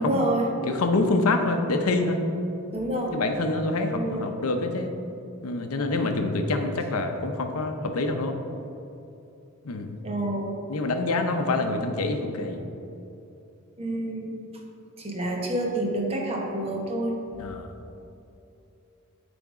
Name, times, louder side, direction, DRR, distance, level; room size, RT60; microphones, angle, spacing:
voice 1, 0.0-0.5 2.7-3.1 3.9-4.2 10.0-10.5 13.8-14.3 15.0-17.1, right 1 dB, 25° right, -1 dB, 1.0 m, -28 dB
voice 2, 0.7-2.2 3.1-4.9 5.4-8.4 9.6-9.9 10.7-12.6 17.4-17.7, left 2 dB, 85° left, 5 dB, 0.6 m, -26 dB
9.1 x 3.5 x 4.9 m, 2.8 s
head